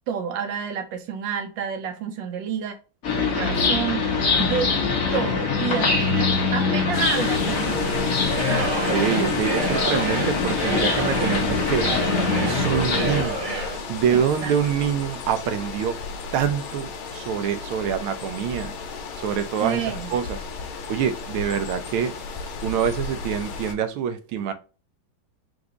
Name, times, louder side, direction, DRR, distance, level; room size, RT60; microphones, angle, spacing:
voice 1, 0.1-2.8 3.3-4.7 5.1-8.1 8.5-8.8 9.9-10.2 14.1-14.5 19.6-20.1, right 8 dB, 70° right, 1.3 m, -29 dB
sound 1, 3.0-13.2, left 4 dB, 50° left, 1.2 m, -23 dB
sound 2, 6.9-23.7, left 4 dB, 80° left, 1.6 m, -34 dB
Singing / Crowd, 8.2-13.9, right 2 dB, 45° right, 0.6 m, -29 dB
voice 2, 8.9-13.4 13.9-16.0 16.3-18.7 19.2-19.8 20.1-20.4 20.9-22.1 22.6-24.5, right 8 dB, 85° right, 1.5 m, -25 dB
4.7 x 2.6 x 3.6 m
omnidirectional pair, 2.3 m